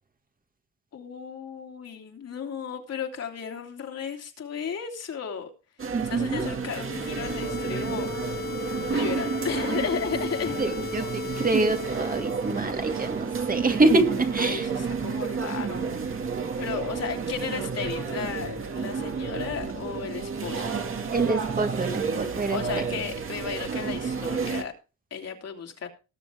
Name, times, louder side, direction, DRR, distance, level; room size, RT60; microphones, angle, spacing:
voice 1, 0.9-5.5 6.0-8.5 8.9-10.6 14.4-15.8 16.6-20.8 22.5-24.7 25.1-25.9, left 7 dB, 55° left, 3.0 m, -34 dB
sound 1, 5.8-24.6, right 5 dB, 45° right, 2.2 m, -31 dB
voice 2, 5.9-6.4 10.6-14.7 21.1-22.8, right 2 dB, 30° right, 1.9 m, -26 dB
sound 2, 6.6-12.7, left 3 dB, 30° left, 0.9 m, -36 dB
19.5 x 7.1 x 3.5 m
cardioid pair, 90°, 30 cm